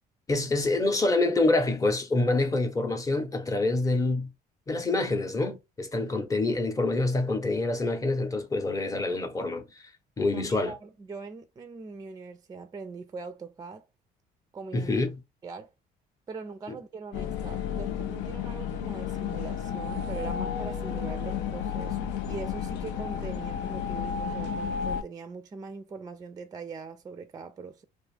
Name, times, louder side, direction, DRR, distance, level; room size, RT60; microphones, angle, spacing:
voice 1, 0.3-4.3 4.7-9.8 10.2-10.7 14.7-15.1, left 2 dB, 20° left, 0.7 m, -26 dB
voice 2, 10.3-13.9 14.5-14.9 15.4-15.7 16.3-27.8, right 4 dB, 20° right, 0.4 m, -41 dB
sound 1, 17.1-25.0, left 7 dB, 90° left, 0.5 m, -32 dB
2.5 x 2.3 x 3.3 m
cardioid pair, 110°, 17 cm